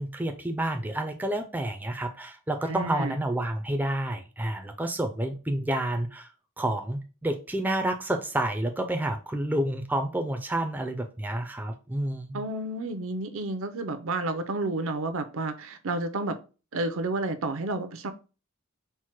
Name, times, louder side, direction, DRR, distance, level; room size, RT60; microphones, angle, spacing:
voice 1, 0.0-6.3 6.6-12.4, right 1 dB, 10° right, 4 dB, 0.4 m, -29 dB
voice 2, 2.7-3.1 12.3-16.4 16.7-18.1, right 2 dB, 70° right, 10 dB, 0.5 m, -30 dB
4.4 x 2.1 x 4.4 m, 0.33 s
head